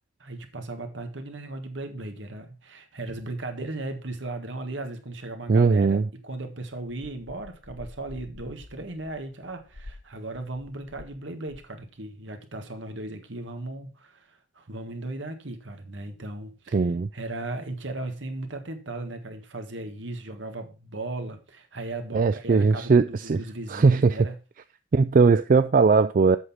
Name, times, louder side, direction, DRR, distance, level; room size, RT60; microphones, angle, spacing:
voice 1, 0.2-24.4, right 2 dB, 70° right, 1.7 m, -36 dB
voice 2, 5.5-6.0 16.7-17.1 22.1-23.4 23.7-24.1 24.9-26.4, right 4 dB, 45° right, 0.3 m, -19 dB
sound 1, 7.4-11.2 11.5-11.9, left 2 dB, 85° left, 1.0 m, -47 dB
8.0 x 6.4 x 5.6 m
head